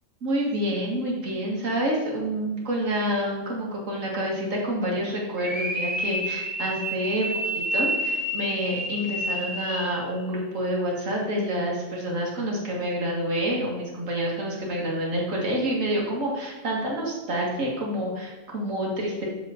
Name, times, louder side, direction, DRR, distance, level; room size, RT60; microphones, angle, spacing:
voice 1, 0.2-7.3 7.6-19.3, equal, 60° right, -3 dB, 2.1 m, -28 dB
sound 1, 5.4-10.1, right 1 dB, ahead, 0.7 m, -29 dB
7.0 x 4.7 x 4.9 m, 1.2 s
omnidirectional pair, 1.5 m